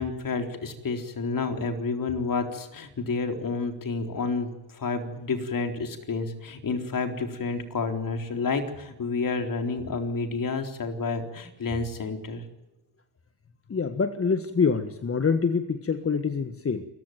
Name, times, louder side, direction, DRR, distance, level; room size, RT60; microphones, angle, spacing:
voice 1, 0.0-12.4, left 4 dB, 45° left, 5 dB, 4.0 m, -30 dB
voice 2, 13.7-16.9, left 5 dB, 30° left, 10 dB, 1.5 m, -25 dB
26.5 x 15.0 x 9.3 m, 1.0 s
supercardioid pair, 70°, 45 cm